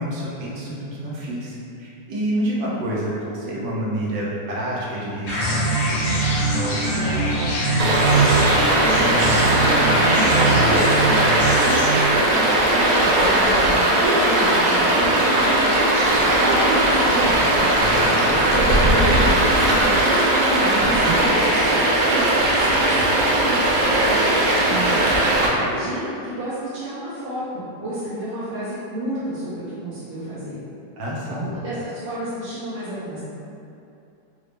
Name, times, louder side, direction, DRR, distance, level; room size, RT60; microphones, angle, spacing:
voice 1, 0.0-5.7 6.0-7.5 17.8-18.3 25.5-25.7 31.0-31.5, right 1 dB, 85° right, -6 dB, 1.4 m, -28 dB
sound 1, 5.3-12.1, right 2 dB, 55° left, 0.9 m, -22 dB
Stream, 7.8-25.5, right 1 dB, 70° right, 1.0 m, -18 dB
voice 2, 8.7-17.4 18.2-21.7 22.1-25.0 25.6-30.6 31.3-33.2, right 1 dB, 50° right, -12 dB, 0.7 m, -30 dB
3.9 x 2.1 x 3.2 m, 2.7 s
omnidirectional pair, 1.9 m